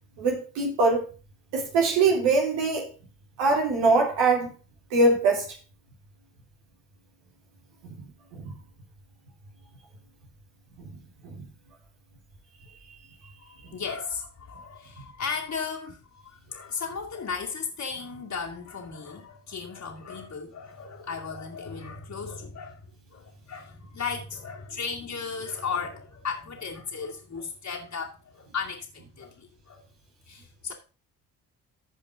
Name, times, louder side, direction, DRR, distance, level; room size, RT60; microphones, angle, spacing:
voice 1, 0.2-1.0 1.5-2.9 3.4-4.5 4.9-5.6 7.8-8.5 10.8-11.4, right 3 dB, 80° right, 3.1 m, -23 dB
voice 2, 13.4-22.8 23.1-29.8 30.3-30.7, left 5 dB, 45° left, 2.4 m, -35 dB
15.0 x 5.2 x 3.6 m
hypercardioid pair, 45°, 38 cm